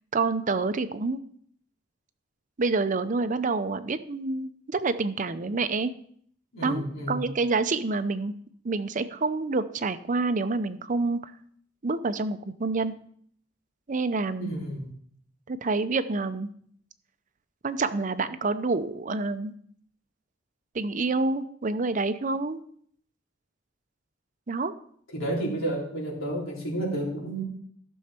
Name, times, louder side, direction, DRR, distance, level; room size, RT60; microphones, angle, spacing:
voice 1, 0.1-1.2 2.6-5.9 6.6-8.3 8.6-11.3 11.8-12.9 13.9-14.5 15.5-16.5 17.6-19.5 20.7-22.6 24.5-24.7, right 3 dB, 40° right, 12 dB, 0.6 m, -27 dB
voice 2, 6.5-7.2 14.4-14.9 25.1-27.4, right 1 dB, 90° left, -3 dB, 3.8 m, -31 dB
14.5 x 6.4 x 4.4 m, 0.62 s
head